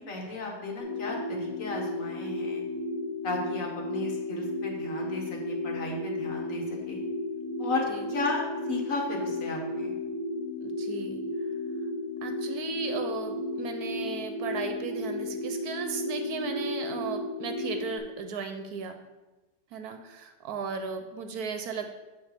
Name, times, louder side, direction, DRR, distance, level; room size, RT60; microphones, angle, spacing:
voice 1, 0.1-2.6 3.2-7.0 7.6-9.9, left 2 dB, 55° left, 0 dB, 1.6 m, -34 dB
sound 1, 0.8-18.0, left 2 dB, 30° left, 2.5 m, -33 dB
voice 2, 10.6-11.2 12.2-19.0 19.7-22.0, right 5 dB, 70° right, 6 dB, 1.1 m, -36 dB
8.7 x 3.2 x 6.6 m, 1.1 s
omnidirectional pair, 1.8 m